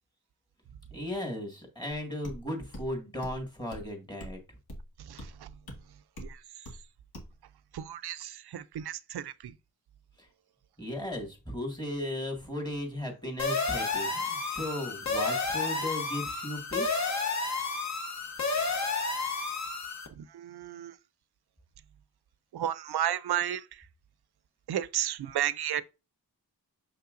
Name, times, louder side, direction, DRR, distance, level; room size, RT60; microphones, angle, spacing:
voice 1, 0.9-4.4 10.2-10.3 10.8-17.1, left 1 dB, 10° left, 1.9 m, -36 dB
sound 1, 2.2-2.4 2.7-2.9 3.2-3.4 3.7-3.9 4.2-4.4 4.7-4.9 5.2-5.3 5.7-5.8 6.2-6.3 6.7-6.8 7.1-7.3, equal, 70° left, 1.9 m, -42 dB
voice 2, 7.7-9.3 20.2-20.9 22.5-23.6 24.7-25.8, right 11 dB, 90° right, 0.5 m, -32 dB
sound 2, 13.4-20.1, left 4 dB, 45° left, 1.1 m, -31 dB
6.6 x 5.6 x 2.5 m
wide cardioid pair, 130°, 37 cm